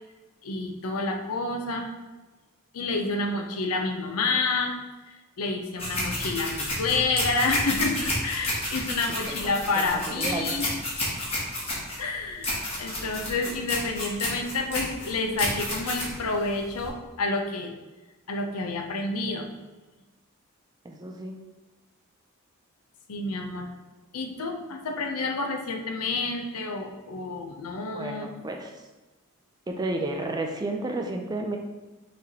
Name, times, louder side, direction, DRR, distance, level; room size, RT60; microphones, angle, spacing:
voice 1, 0.4-1.9 2.7-4.8 5.1-10.7 12.0-17.8 18.3-19.5 23.1-23.7 24.1-28.3, left 3 dB, 80° left, 4 dB, 0.6 m, -29 dB
sound 1, 5.8-16.9, left 1 dB, 25° left, 1.2 m, -31 dB
voice 2, 9.3-10.6 20.8-21.4 27.9-28.7 29.7-31.6, right 2 dB, 20° right, 3 dB, 0.3 m, -32 dB
5.8 x 3.2 x 2.8 m, 1.2 s
head